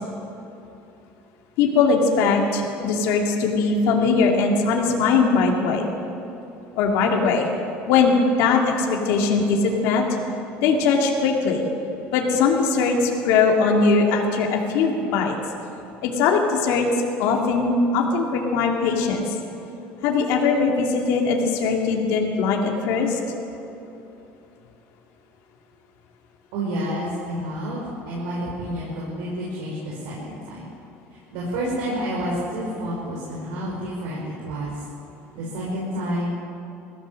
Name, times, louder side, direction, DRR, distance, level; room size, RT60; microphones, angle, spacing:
voice 1, 1.6-5.9 6.8-7.5 7.9-8.1 8.4-10.1 10.6-11.7 12.1-15.4 16.0-16.9 17.2-19.3 20.0-23.2, left 4 dB, 70° left, 0 dB, 2.6 m, -20 dB
voice 2, 26.5-30.6 31.3-34.8 35.3-36.4, equal, 80° right, -5 dB, 5.4 m, -29 dB
22.0 x 15.5 x 7.7 m, 2.9 s
cardioid pair, 165°, 5 cm